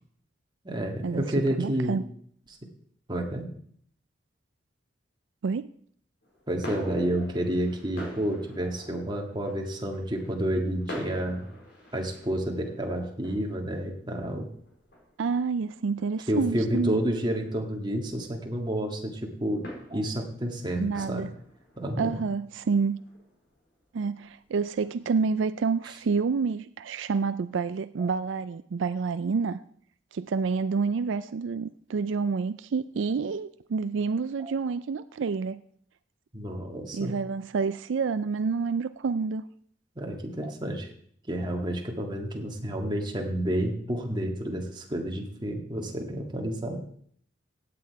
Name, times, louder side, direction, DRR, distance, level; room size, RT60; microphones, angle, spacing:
voice 1, 0.6-2.0 3.1-3.5 6.5-11.5 11.9-14.5 16.3-21.3 21.8-22.2 34.4-34.5 36.3-37.1 40.0-40.9 41.3-46.8, right 1 dB, 25° right, 2 dB, 1.8 m, -30 dB
voice 2, 1.6-2.0 5.4-5.7 15.2-17.0 20.8-21.3 22.0-23.0 23.9-29.6 30.1-35.6 36.9-39.4, right 5 dB, 75° right, 13 dB, 0.4 m, -28 dB
sound 1, 6.2-25.3, equal, 55° left, 4.7 m, -47 dB
16.0 x 8.6 x 4.6 m, 0.62 s
head